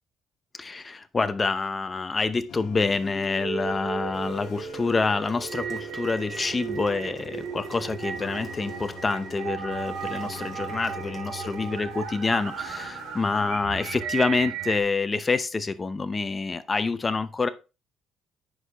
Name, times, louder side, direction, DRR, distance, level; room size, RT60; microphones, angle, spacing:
voice 1, 0.5-17.5, left 4 dB, 20° left, 12 dB, 0.7 m, -27 dB
sound 1, 2.5-13.5, left 6 dB, 70° left, 1.5 m, -45 dB
sound 2, 3.3-14.8, right 7 dB, 90° right, 2.2 m, -35 dB
sound 3, 5.1-11.7, right 2 dB, 25° right, 1.8 m, -46 dB
9.6 x 6.4 x 3.0 m, 0.30 s
cardioid pair, 140°, 0 cm